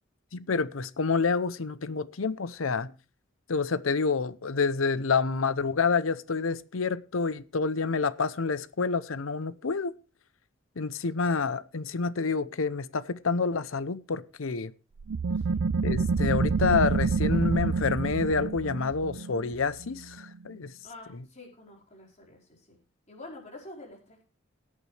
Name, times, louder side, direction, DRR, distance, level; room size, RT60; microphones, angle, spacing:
voice 1, 0.3-2.9 3.5-9.9 10.8-14.7 15.8-20.7, left 4 dB, 85° left, 0.7 m, -28 dB
sound 1, 15.0-20.3, right 4 dB, 80° right, 0.5 m, -28 dB
voice 2, 20.8-22.8 23.1-24.2, left 2 dB, 35° left, 4.8 m, -47 dB
17.5 x 8.6 x 3.3 m
head